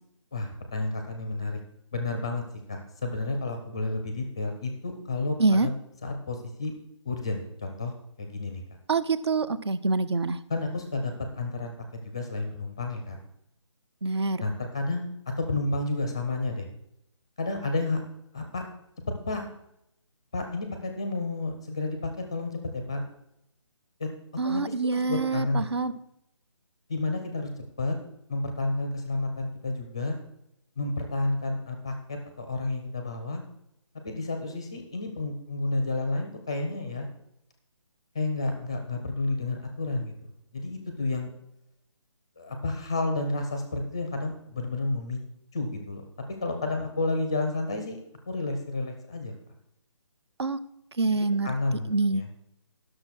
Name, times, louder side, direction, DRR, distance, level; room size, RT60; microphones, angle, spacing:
voice 1, 0.3-1.6 1.9-2.4 2.7-5.7 6.0-6.7 7.0-8.6 10.5-11.7 12.0-13.2 14.4-15.1 15.4-16.7 17.4-18.0 18.3-18.6 19.3-19.4 20.3-23.0 24.0-24.1 24.4-25.7 26.9-27.5 27.8-28.0 28.3-30.2 30.8-33.4 34.0-37.1 38.1-40.1 40.5-41.3 42.4-45.2 45.5-46.1 46.4-48.0 48.3-49.3 51.1-52.3, left 2 dB, 10° left, 5 dB, 0.6 m, -31 dB
voice 2, 8.9-10.4 14.0-14.4 24.4-25.9 50.4-50.6 51.0-51.5 51.9-52.2, right 3 dB, 55° right, 14 dB, 0.7 m, -25 dB
12.0 x 6.5 x 6.1 m, 0.78 s
hypercardioid pair, 180°, 16 cm